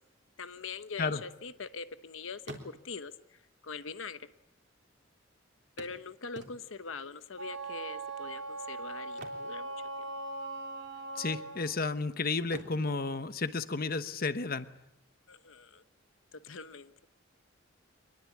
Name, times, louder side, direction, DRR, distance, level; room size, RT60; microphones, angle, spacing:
voice 1, 0.4-4.3 5.8-10.1 15.3-15.8 16.3-16.9, left 5 dB, 85° left, 11 dB, 1.0 m, -43 dB
sound 1, 1.9-2.0 2.3-3.2 4.1-4.2 4.4-4.5 5.8-7.0 9.0-10.3 10.6-10.8 11.3-12.0 12.4-14.2 16.2-16.3 16.7-16.8, right 2 dB, 60° right, 3.5 m, -50 dB
Wind instrument woodwind instrument, 7.3-11.6, right 2 dB, 85° right, 6.5 m, -40 dB
voice 2, 11.2-14.7, left 3 dB, 50° left, 11 dB, 1.1 m, -32 dB
25.0 x 21.0 x 8.5 m, 0.85 s
head